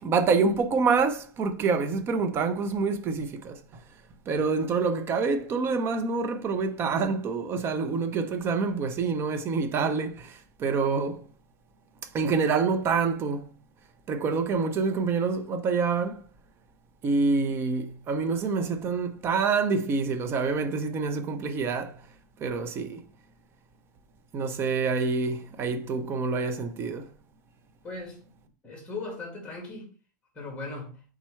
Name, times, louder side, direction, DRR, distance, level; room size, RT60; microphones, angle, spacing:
voice 1, 0.0-3.8 4.3-11.2 12.1-13.5 14.1-16.2 17.0-22.0 22.4-23.0 24.3-27.1, right 4 dB, 25° right, 0.5 m, -27 dB
voice 2, 27.8-28.4 28.6-29.9 30.4-31.0, left 3 dB, 10° left, 1.8 m, -38 dB
4.3 x 3.6 x 3.1 m
supercardioid pair, 150°, 10 cm